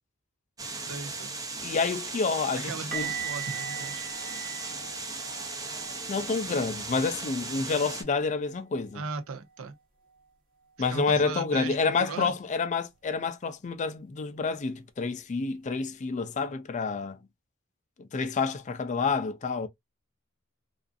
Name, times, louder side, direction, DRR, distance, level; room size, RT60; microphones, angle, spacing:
sound 1, 0.6-8.0, right 3 dB, 15° right, 0.5 m, -37 dB
voice 1, 0.8-1.4 2.5-4.1 8.9-9.7 10.9-12.3, right 4 dB, 75° right, 0.6 m, -37 dB
voice 2, 1.6-3.1 6.1-9.0 10.8-17.2 18.0-19.7, left 4 dB, 35° left, 0.4 m, -29 dB
sound 2, 2.9-8.7 8.9-9.2 9.5-9.7 12.9-13.0, right 9 dB, 45° right, 1.0 m, -41 dB
2.4 x 2.4 x 2.3 m
head